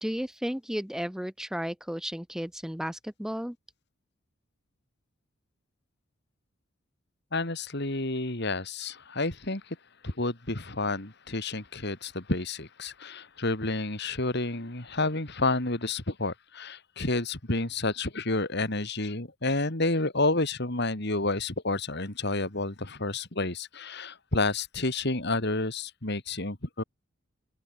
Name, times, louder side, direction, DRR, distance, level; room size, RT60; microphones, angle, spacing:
voice 1, 0.0-3.6, equal, ahead, 0.6 m, -33 dB
voice 2, 7.3-9.8 10.0-26.8, left 2 dB, 50° left, 2.7 m, -30 dB
open air
head